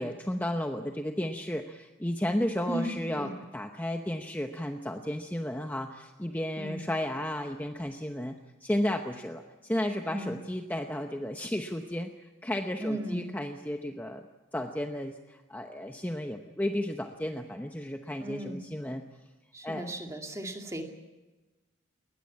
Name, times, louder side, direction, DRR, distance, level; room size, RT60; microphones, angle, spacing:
voice 1, 0.0-8.4 8.6-14.2 14.5-19.0 19.6-19.9, left 1 dB, 10° left, 4 dB, 0.9 m, -33 dB
voice 2, 2.7-3.3 6.6-6.8 10.1-10.3 12.8-13.3 18.2-18.6 19.5-20.9, right 1 dB, 15° right, 3 dB, 2.4 m, -36 dB
21.0 x 20.0 x 8.7 m, 1.2 s
head